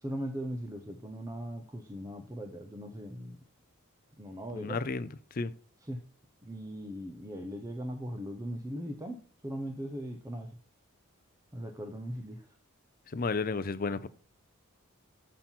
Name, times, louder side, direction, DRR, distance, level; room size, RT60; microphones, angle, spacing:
voice 1, 0.0-3.4 4.2-4.8 5.9-6.0 6.4-9.2 9.4-10.6 11.5-12.5, equal, 15° right, 4 dB, 0.6 m, -39 dB
voice 2, 4.5-5.5 13.1-14.1, left 4 dB, 40° left, 13 dB, 0.5 m, -33 dB
7.3 x 5.6 x 4.4 m, 0.44 s
head